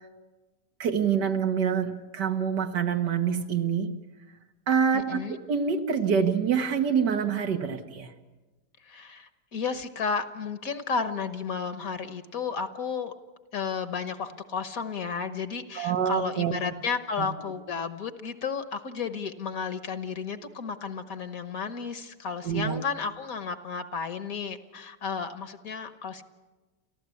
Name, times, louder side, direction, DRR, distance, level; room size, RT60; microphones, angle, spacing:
voice 1, 0.8-3.9 4.7-5.2 5.5-8.1 15.8-16.5 17.2-17.3 22.4-22.8, right 7 dB, 85° right, 6 dB, 2.1 m, -26 dB
voice 2, 4.9-5.4 8.8-13.1 13.5-26.2, left 5 dB, 60° left, 10 dB, 1.5 m, -33 dB
29.0 x 14.5 x 8.5 m, 1.2 s
omnidirectional pair, 1.8 m